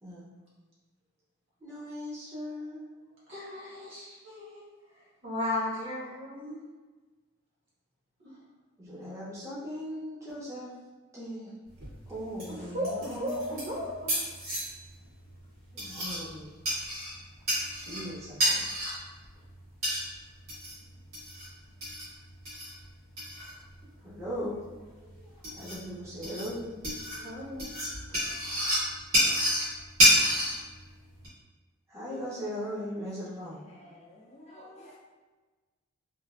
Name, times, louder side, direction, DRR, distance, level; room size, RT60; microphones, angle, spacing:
voice 1, 1.6-2.9 8.8-10.7 11.1-11.6 12.1-14.0 15.7-16.5 17.9-18.7 24.0-24.6 24.8-26.7 27.2-27.3 31.9-33.9, equal, 15° right, -10 dB, 0.7 m, -39 dB
voice 2, 3.3-4.5 5.2-6.6 12.7-14.1 17.9-18.0 27.2-27.7, left 1 dB, 60° right, -9 dB, 1.4 m, -35 dB
sound 1, 11.7-31.3, equal, 85° right, 1.5 m, -31 dB
voice 3, 33.6-35.0, left 1 dB, 30° left, -4 dB, 0.4 m, -52 dB
3.1 x 2.4 x 2.4 m, 1.3 s
head